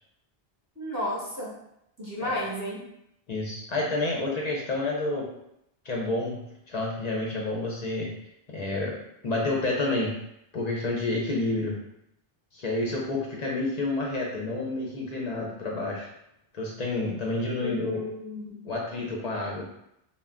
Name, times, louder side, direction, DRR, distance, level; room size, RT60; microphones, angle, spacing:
voice 1, 0.8-1.6 2.0-2.9 17.6-18.6, left 1 dB, 20° right, -5 dB, 0.7 m, -32 dB
voice 2, 3.3-5.2 5.8-8.1 8.5-8.9 9.2-10.1 10.5-11.7 12.5-16.1 16.5-18.0 18.7-19.6, left 2 dB, 50° left, -2 dB, 0.5 m, -29 dB
2.3 x 2.2 x 3.5 m, 0.79 s
omnidirectional pair, 1.0 m